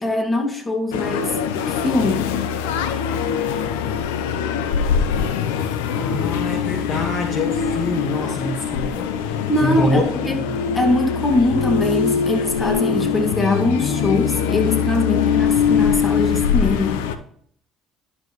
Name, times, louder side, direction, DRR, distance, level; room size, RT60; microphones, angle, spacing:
voice 1, 0.0-2.3 9.5-10.4 10.7-17.0, left 2 dB, 25° left, 3 dB, 2.2 m, -22 dB
sound 1, 0.9-17.2, left 7 dB, 85° left, 0.6 m, -22 dB
voice 2, 5.9-10.1 10.4-10.5, left 2 dB, 55° left, 3 dB, 1.6 m, -25 dB
11.5 x 6.1 x 3.1 m, 0.62 s
hypercardioid pair, 65°, 0 cm